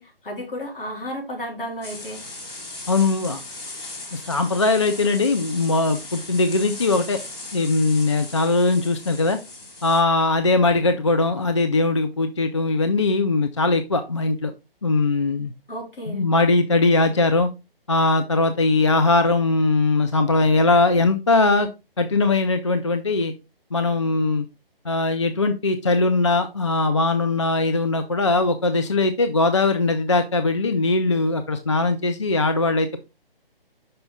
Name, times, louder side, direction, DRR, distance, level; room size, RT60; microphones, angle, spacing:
voice 1, 0.0-2.2 15.7-16.3, equal, 65° left, -1 dB, 3.7 m, -33 dB
sound 1, 1.8-10.0, left 2 dB, 10° left, 1.9 m, -38 dB
voice 2, 2.9-3.4 4.1-7.2 7.5-9.4 9.8-14.5 14.8-15.5 16.1-17.5 17.9-21.7 22.0-23.3 23.7-24.5 24.9-33.0, left 3 dB, 30° left, 8 dB, 0.4 m, -20 dB
5.4 x 5.4 x 3.6 m, 0.27 s
figure-of-eight pair, 145°, 29 cm